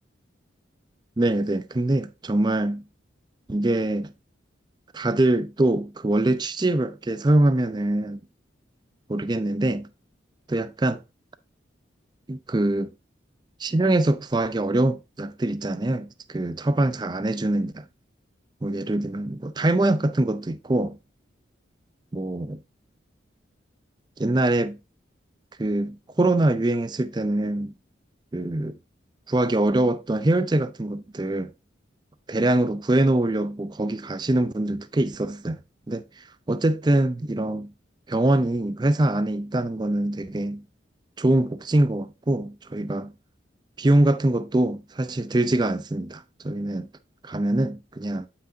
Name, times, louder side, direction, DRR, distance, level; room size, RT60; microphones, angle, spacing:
voice 1, 1.2-2.8 3.5-4.1 4.9-8.2 9.1-9.9 10.5-11.0 12.3-12.9 13.6-17.8 18.6-21.0 22.1-22.6 24.2-24.8 25.6-27.7 28.3-28.8 29.3-31.5 32.3-35.6 35.9-36.0 36.5-37.7 38.1-40.6 41.2-43.1 43.8-46.9 47.2-48.3, right 1 dB, 20° right, 0.4 m, -23 dB
8.5 x 5.8 x 2.7 m
head